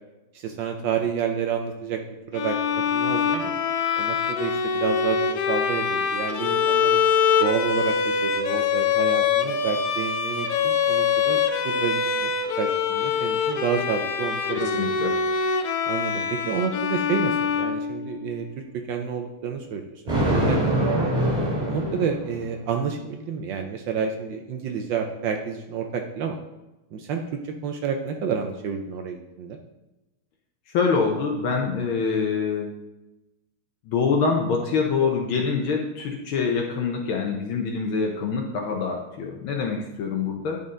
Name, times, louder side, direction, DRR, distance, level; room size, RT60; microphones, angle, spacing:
voice 1, 0.3-2.0 2.3-2.6 2.9-3.5 4.0-7.0 7.4-12.3 12.6-14.9 15.9-18.5 18.9-20.8 21.7-26.4 26.9-29.6, right 6 dB, 70° right, 4 dB, 1.2 m, -29 dB
Bowed string instrument, 2.3-18.4, left 6 dB, 90° left, 0.8 m, -24 dB
voice 2, 14.5-15.1 30.7-32.7 33.9-40.6, left 5 dB, 70° left, 1 dB, 1.6 m, -25 dB
Thunder, 20.1-22.6, right 1 dB, 20° right, 2.4 m, -24 dB
10.5 x 4.1 x 3.7 m, 0.99 s
omnidirectional pair, 2.4 m